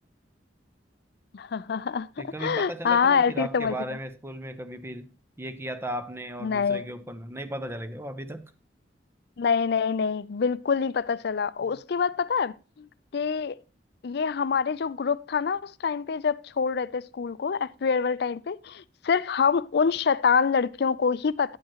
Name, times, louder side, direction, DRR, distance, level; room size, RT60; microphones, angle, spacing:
voice 1, 1.3-3.7 6.4-6.9 9.4-12.9 13.1-13.6 14.0-21.6, left 6 dB, 65° left, 0.4 m, -26 dB
voice 2, 2.2-8.5, right 1 dB, 15° right, 0.8 m, -36 dB
9.9 x 8.0 x 2.9 m
head